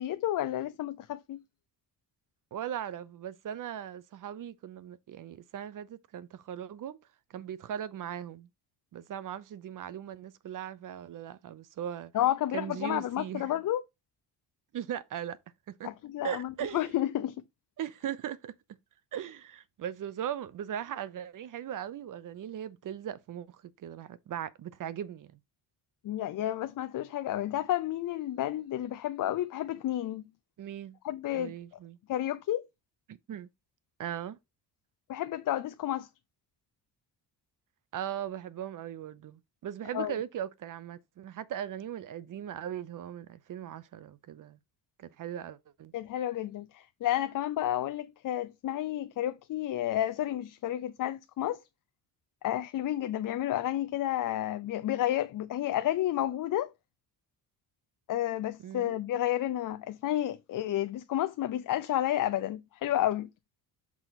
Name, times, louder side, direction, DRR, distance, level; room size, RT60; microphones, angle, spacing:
voice 1, 0.0-1.4 12.1-13.8 15.8-17.4 26.0-30.2 31.0-31.5 32.1-32.7 35.1-36.1 39.9-40.1 45.9-51.6 52.4-56.7 58.1-63.3, left 13 dB, 50° left, 0.5 m, -31 dB
voice 2, 2.5-7.0 7.3-8.5 8.9-12.1 12.5-13.5 14.7-15.4 15.7-15.9 16.2-16.9 17.8-18.5 19.1-25.3 30.6-31.0 31.3-32.0 33.1-33.5 34.0-34.4 37.9-44.6 45.0-45.9 58.6-58.9, right 10 dB, 50° right, 0.7 m, -39 dB
6.1 x 4.4 x 4.1 m
cardioid pair, 120°, 42 cm